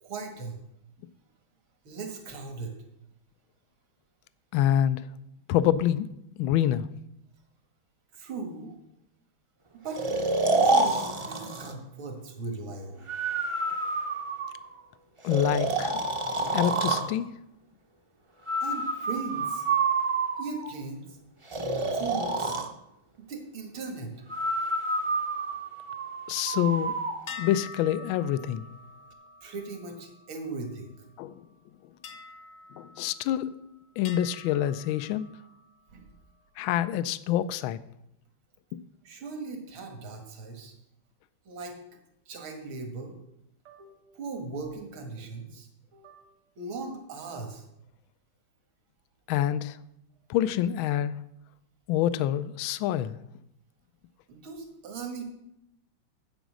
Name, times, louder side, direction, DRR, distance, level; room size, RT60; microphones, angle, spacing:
voice 1, 0.0-0.6 1.8-2.8 8.1-8.8 9.7-10.0 10.4-13.1 18.6-19.6 20.4-21.2 21.9-22.6 23.2-24.2 29.4-31.1 35.9-36.1 39.0-40.7 41.5-41.8 42.3-43.2 43.6-46.2 46.6-47.6 54.3-55.2, right 4 dB, 80° right, 3 dB, 2.4 m, -38 dB
voice 2, 4.5-5.0 5.5-6.9 15.2-16.0 16.5-17.3 26.3-27.0 27.4-28.7 31.2-31.4 32.8-33.5 34.0-35.3 36.6-37.8 49.3-49.8 50.3-51.1 51.9-53.2, left 11 dB, 80° left, 15 dB, 1.3 m, -26 dB
Breathing, 9.9-11.7 13.1-14.7 15.3-17.1 18.5-20.7 21.5-22.7 24.3-27.1, right 3 dB, 35° right, 0.5 m, -28 dB
sound 1, 27.3-30.9 32.0-33.6 34.0-35.7, left 4 dB, 55° left, 1.4 m, -46 dB
9.0 x 8.1 x 6.2 m, 0.82 s
omnidirectional pair, 2.3 m